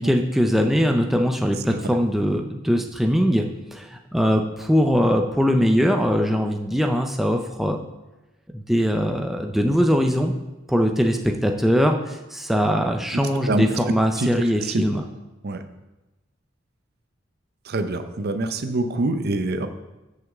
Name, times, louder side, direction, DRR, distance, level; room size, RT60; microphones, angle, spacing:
voice 1, 0.0-3.4 3.7-7.8 8.5-10.3 10.7-15.0, equal, ahead, 3 dB, 0.5 m, -21 dB
voice 2, 13.5-13.8 14.2-14.8 15.4-15.6 17.6-19.7, right 2 dB, 50° right, 9 dB, 0.6 m, -25 dB
6.2 x 5.8 x 7.2 m, 1.0 s
head